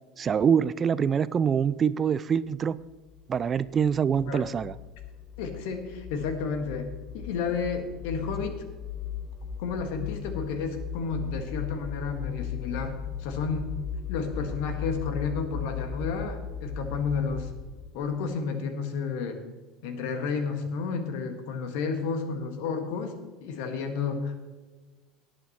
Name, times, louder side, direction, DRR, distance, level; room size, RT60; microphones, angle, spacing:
voice 1, 0.2-2.8 3.3-4.7, right 7 dB, 30° right, 18 dB, 0.3 m, -25 dB
sound 1, 2.8-18.1, left 7 dB, ahead, 1.9 m, -37 dB
voice 2, 5.4-6.9 7.1-8.6 9.6-13.7 14.1-17.5 17.9-19.4 19.8-24.4, left 5 dB, 60° left, 7 dB, 1.6 m, -31 dB
18.0 x 8.8 x 3.0 m, 1.3 s
figure-of-eight pair, 70°, 0 cm